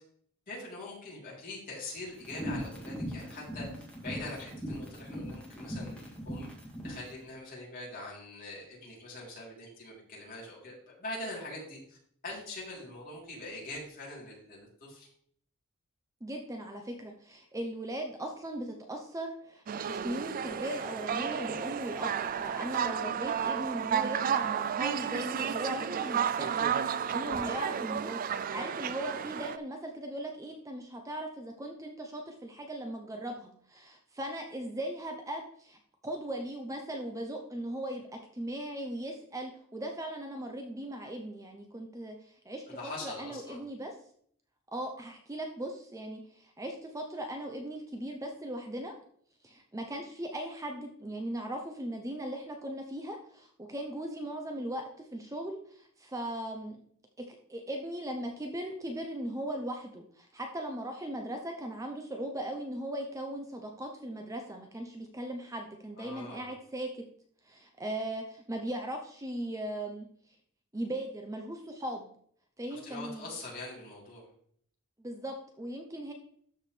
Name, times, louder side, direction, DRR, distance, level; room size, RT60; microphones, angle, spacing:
voice 1, 0.5-3.6 4.0-6.5 6.8-12.0 12.2-15.1 42.7-43.6 66.0-66.5 72.7-74.3, left 2 dB, 40° left, -5 dB, 3.4 m, -43 dB
sound 1, 2.2-7.0, equal, 5° left, 1.9 m, -39 dB
voice 2, 16.2-42.7 43.0-43.9 44.7-48.9 49.4-56.8 57.2-67.0 67.4-70.3 70.7-72.1 72.6-73.3 75.0-76.1, right 1 dB, 15° right, 3 dB, 0.7 m, -38 dB
sound 2, 19.7-29.6, right 8 dB, 40° right, 0.3 m, -32 dB
13.0 x 4.8 x 3.3 m, 0.62 s
head